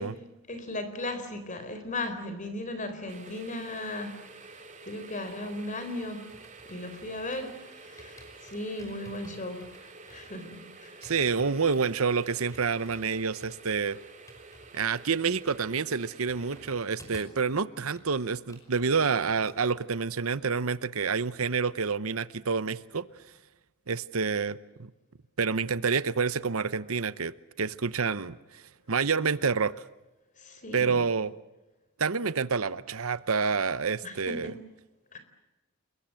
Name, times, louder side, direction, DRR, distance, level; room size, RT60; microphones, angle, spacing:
voice 1, 0.0-6.3 6.6-11.1 30.4-31.0 34.0-34.6 35.1-35.2, left 2 dB, 35° left, 9 dB, 4.0 m, -37 dB
sound 1, 3.1-16.7, right 3 dB, 35° right, 2.8 m, -50 dB
sound 2, 5.4-7.6 8.0-17.5 17.7-19.6 19.9-20.1, equal, 15° left, 5.6 m, -54 dB
voice 2, 11.0-14.0 14.7-23.1 23.9-24.9 25.4-28.4 28.9-29.7 30.7-31.3 32.0-34.5, right 5 dB, 70° right, 16 dB, 0.9 m, -28 dB
29.5 x 22.0 x 7.8 m, 1.0 s
head